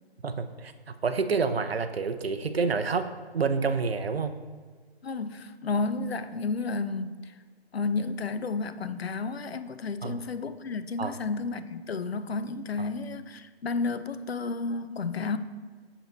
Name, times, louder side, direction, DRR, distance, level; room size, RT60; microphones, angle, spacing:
voice 1, 0.2-0.7 1.0-3.1 3.3-4.3 10.0-10.2 11.0-11.1, right 4 dB, 70° right, 9 dB, 0.8 m, -28 dB
voice 2, 5.0-7.3 7.7-15.4, left 4 dB, 70° left, 12 dB, 0.7 m, -32 dB
7.2 x 6.8 x 4.1 m, 1.5 s
figure-of-eight pair, 160°, 32 cm